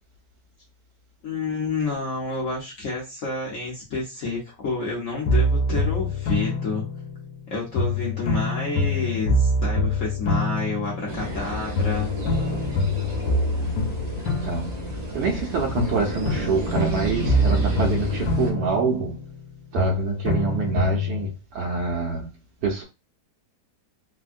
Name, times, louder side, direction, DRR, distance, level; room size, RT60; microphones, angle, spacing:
voice 1, 1.2-6.8 7.5-12.1, left 3 dB, 55° left, 1.1 m, -29 dB
sound 1, 5.3-7.4 7.8-11.5 11.8-15.4 15.8-19.5 19.8-21.3, left 1 dB, 80° left, 1.3 m, -25 dB
sound 2, 11.1-18.5, equal, 50° right, 0.5 m, -31 dB
voice 2, 14.2-14.8 15.1-19.2 19.7-22.8, right 5 dB, 75° right, 1.2 m, -26 dB
3.4 x 2.1 x 2.4 m
omnidirectional pair, 1.8 m